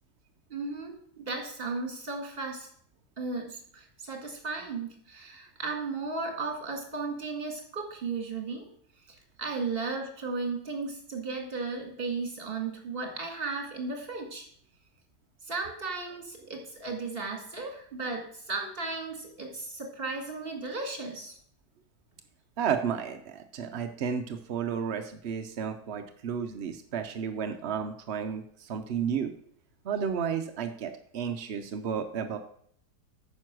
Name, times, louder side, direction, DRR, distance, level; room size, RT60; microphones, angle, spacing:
voice 1, 0.5-2.7 3.2-8.7 9.4-14.5 15.4-21.3, right 3 dB, 35° right, 2 dB, 2.1 m, -35 dB
voice 2, 22.6-29.3 29.8-32.4, right 7 dB, 65° right, 6 dB, 0.6 m, -32 dB
9.2 x 5.6 x 6.1 m, 0.64 s
omnidirectional pair, 1.8 m